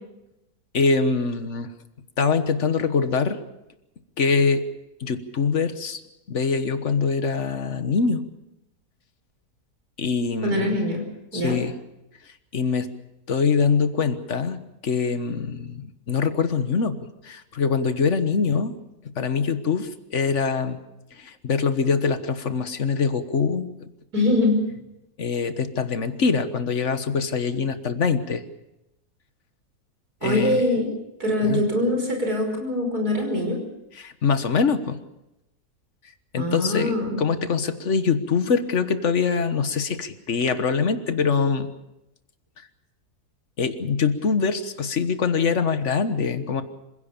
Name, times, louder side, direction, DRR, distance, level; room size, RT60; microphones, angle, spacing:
voice 1, 0.7-1.7 2.2-3.4 4.2-4.7 5.0-6.0 6.3-8.2 10.0-10.8 11.3-11.8 12.5-12.9 13.3-17.0 17.2-18.7 19.1-20.8 21.1-23.9 25.2-28.4 30.2-30.6 31.4-31.6 33.9-35.0 36.3-41.7 43.6-46.6, left 5 dB, 50° left, 10 dB, 1.5 m, -24 dB
voice 2, 10.4-11.0 11.3-11.6 24.1-24.6 30.2-30.9 31.2-33.6 36.4-37.2, left 1 dB, 70° right, 2 dB, 6.1 m, -23 dB
26.5 x 16.5 x 7.0 m, 0.92 s
omnidirectional pair, 1.7 m